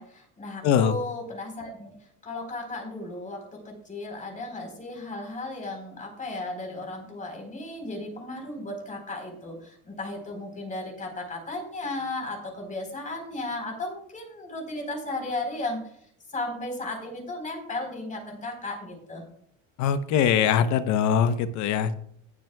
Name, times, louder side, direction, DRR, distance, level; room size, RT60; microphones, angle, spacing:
voice 1, 0.0-1.9 2.2-15.8 16.3-19.2, left 2 dB, 25° left, 2 dB, 3.9 m, -35 dB
voice 2, 0.6-1.0 19.8-21.9, left 8 dB, 60° left, 12 dB, 0.9 m, -22 dB
19.0 x 7.6 x 2.3 m, 0.66 s
cardioid pair, 125°, 33 cm